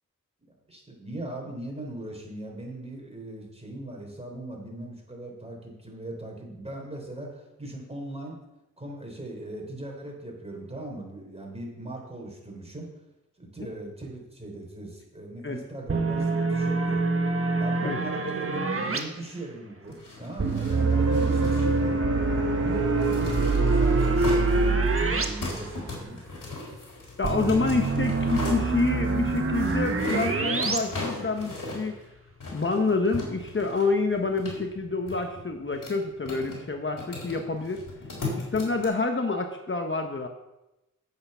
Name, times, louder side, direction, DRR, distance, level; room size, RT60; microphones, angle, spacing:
voice 1, 0.7-8.4 8.8-12.9 13.4-17.1 17.6-22.1 22.6-26.2, right 1 dB, 20° right, 0 dB, 4.1 m, -39 dB
sound 1, 15.9-19.0 20.4-25.3 25.6-25.7 27.2-30.8, right 3 dB, 45° right, 1.3 m, -27 dB
sound 2, 19.8-38.8, left 2 dB, 75° left, 3.8 m, -39 dB
sound 3, 20.7-25.7, right 3 dB, 70° right, 2.0 m, -25 dB
voice 2, 27.2-31.9 32.5-37.8 38.3-40.3, left 3 dB, 40° left, 4 dB, 1.1 m, -28 dB
9.6 x 8.1 x 5.7 m, 0.95 s
cardioid pair, 55°, 32 cm